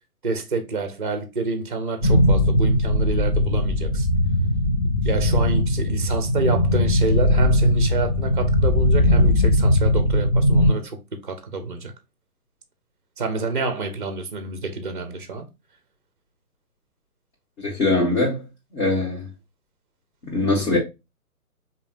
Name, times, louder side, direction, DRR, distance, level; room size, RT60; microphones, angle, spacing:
voice 1, 0.2-4.1 5.0-11.0 11.2-11.9 13.2-15.5 20.7-20.8, right 4 dB, 35° right, 0.5 m, -28 dB
sound 1, 2.0-10.7, left 1 dB, 30° left, 2.0 m, -19 dB
voice 2, 17.6-18.4 18.7-19.3 20.3-20.8, left 2 dB, 50° left, 1.9 m, -21 dB
4.9 x 2.8 x 2.5 m
figure-of-eight pair, 135°, 45 cm